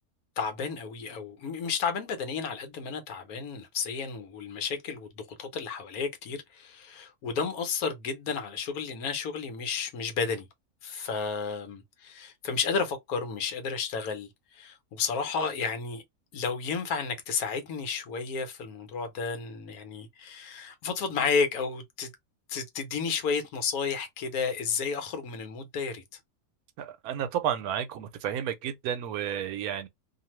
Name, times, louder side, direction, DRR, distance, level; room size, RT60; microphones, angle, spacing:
voice 1, 0.4-10.5 10.8-16.0 16.3-22.1 22.5-26.0, left 5 dB, 75° left, 1.2 m, -32 dB
voice 2, 26.8-29.9, right 9 dB, 80° right, 1.1 m, -31 dB
2.6 x 2.5 x 2.9 m
omnidirectional pair, 1.6 m